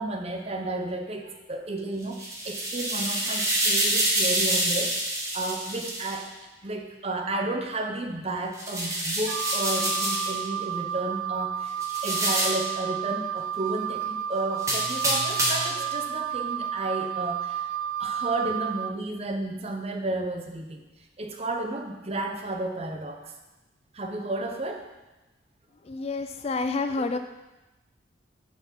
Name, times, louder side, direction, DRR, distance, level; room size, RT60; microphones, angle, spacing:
voice 1, 0.0-6.3 6.6-17.7 18.0-20.8 21.2-23.3 23.9-24.9 27.0-27.2, right 2 dB, 30° right, 4 dB, 0.8 m, -32 dB
sound 1, 2.0-6.2 8.5-10.4 11.8-12.7 14.6-15.8, right 1 dB, 15° right, 1.4 m, -27 dB
Wind instrument woodwind instrument, 9.3-18.9, right 9 dB, 85° right, 0.4 m, -31 dB
voice 2, 25.8-27.2, left 3 dB, 30° left, 8 dB, 0.3 m, -28 dB
10.0 x 4.9 x 5.4 m, 1.0 s
head